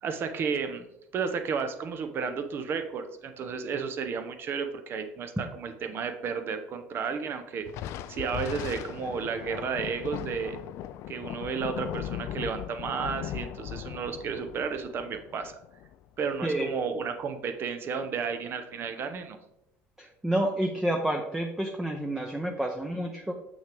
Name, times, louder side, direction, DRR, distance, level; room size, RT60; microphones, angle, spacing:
voice 1, 0.0-0.9 1.1-7.7 8.1-10.6 11.1-15.6 16.2-19.4, right 6 dB, 45° right, 8 dB, 0.8 m, -32 dB
Thunder, 7.7-16.4, left 12 dB, 65° left, 0.4 m, -38 dB
voice 2, 20.0-23.3, right 1 dB, 10° right, 3 dB, 0.7 m, -29 dB
6.2 x 6.1 x 3.5 m, 0.82 s
supercardioid pair, 95°, 5 cm